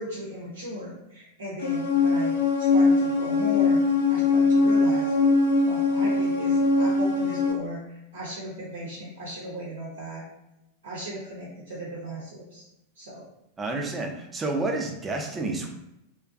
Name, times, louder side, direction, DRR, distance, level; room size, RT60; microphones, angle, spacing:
voice 1, 0.0-3.8 4.1-5.1 5.6-10.2 10.8-12.7 13.0-13.2, right 1 dB, 65° right, -5 dB, 0.6 m, -37 dB
sound 1, 1.6-7.5, left 3 dB, 60° left, 0.4 m, -21 dB
voice 2, 13.6-15.7, right 2 dB, 15° right, 2 dB, 0.4 m, -29 dB
2.4 x 2.2 x 2.4 m, 0.88 s
figure-of-eight pair, 90°, 0 cm